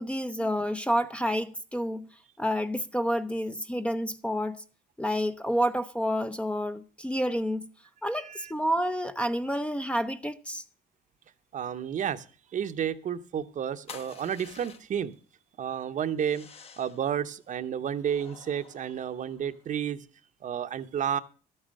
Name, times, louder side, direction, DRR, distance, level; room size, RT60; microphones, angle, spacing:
voice 1, 0.0-2.1 2.4-4.6 5.0-7.7 8.0-10.6, equal, 5° left, 0.6 m, -29 dB
voice 2, 8.1-8.5 11.5-12.2 12.5-15.1 15.6-16.5 16.8-20.0 20.4-21.2, right 9 dB, 50° right, 0.9 m, -31 dB
sound 1, 13.9-15.1 16.2-17.1 18.0-19.7, left 6 dB, 35° left, 1.1 m, -50 dB
12.5 x 8.9 x 6.4 m
cardioid pair, 110°, 17 cm